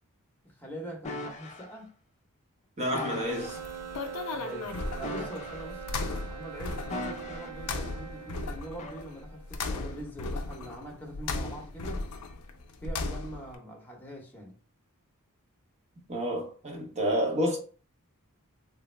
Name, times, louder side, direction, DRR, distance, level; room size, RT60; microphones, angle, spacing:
voice 1, 0.4-1.9 4.3-5.8 6.3-12.1 12.8-14.5, right 1 dB, 10° left, 0.9 m, -43 dB
sound 1, 1.0-1.7 2.9-3.6 5.0-5.9 6.9-7.6 8.8-9.0, left 2 dB, 30° left, 0.5 m, -38 dB
voice 2, 2.8-3.6 16.1-17.6, equal, 30° right, 0.8 m, -29 dB
sound 2, 3.3-13.5, left 3 dB, 85° left, 0.5 m, -37 dB
sound 3, 3.3-9.7, right 8 dB, 85° right, 0.5 m, -43 dB
3.3 x 2.0 x 3.2 m
head